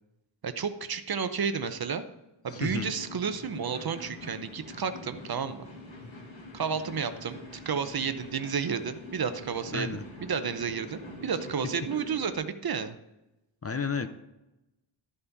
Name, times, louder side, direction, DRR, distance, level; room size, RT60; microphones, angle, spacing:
voice 1, 0.4-2.0 2.4-5.7 6.5-7.4 7.7-12.9, right 6 dB, 50° right, 10 dB, 0.7 m, -31 dB
sound 1, 2.5-12.4, left 2 dB, 80° left, 3.4 m, -45 dB
voice 2, 2.5-2.9 9.7-10.0 13.6-14.1, left 5 dB, 30° left, 9 dB, 0.5 m, -31 dB
13.0 x 5.8 x 4.0 m, 0.94 s
wide cardioid pair, 165°, 47 cm